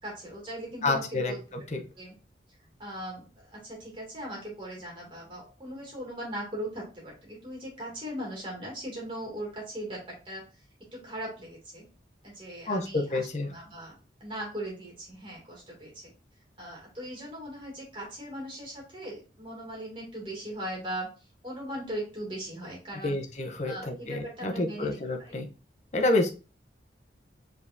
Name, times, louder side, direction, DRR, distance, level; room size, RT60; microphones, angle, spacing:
voice 1, 0.0-1.4 2.0-2.1 2.8-10.5 10.9-11.9 12.2-16.1 16.6-21.1 21.4-23.2 23.6-25.3, right 1 dB, 30° right, -2 dB, 2.3 m, -39 dB
voice 2, 0.8-1.3 1.7-1.8 12.7-13.5 23.0-25.5 25.9-26.3, left 2 dB, 40° left, 3 dB, 0.7 m, -28 dB
5.2 x 3.5 x 2.6 m, 0.33 s
head